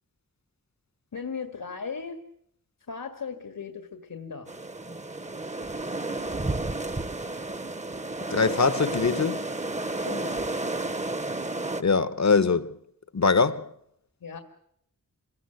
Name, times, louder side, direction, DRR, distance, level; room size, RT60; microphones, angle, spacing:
voice 1, 1.1-2.2 2.9-4.5 9.9-10.4 14.2-14.4, left 5 dB, 80° left, 1.9 m, -37 dB
sound 1, 4.5-11.8, right 2 dB, 20° right, 0.9 m, -32 dB
voice 2, 8.3-9.4 11.8-12.8 13.1-13.7, left 4 dB, 55° left, 1.0 m, -22 dB
26.5 x 17.0 x 8.0 m
wide cardioid pair, 95°, 33 cm